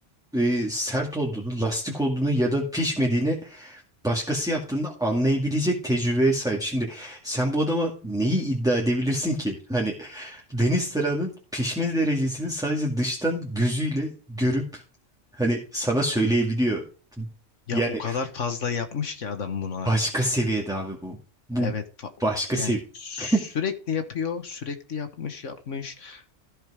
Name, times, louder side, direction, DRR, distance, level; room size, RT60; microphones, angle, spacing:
voice 1, 0.3-14.8 15.3-16.8 17.2-17.3 17.7-18.2 19.9-21.2 21.5-21.7 22.2-22.8 23.2-23.4, right 1 dB, 5° right, -2 dB, 2.1 m, -25 dB
voice 2, 17.7-19.9 20.2-20.3 21.6-22.1 22.5-26.4, left 6 dB, 70° left, 8 dB, 1.6 m, -31 dB
14.0 x 5.4 x 4.9 m, 0.38 s
omnidirectional pair, 1.3 m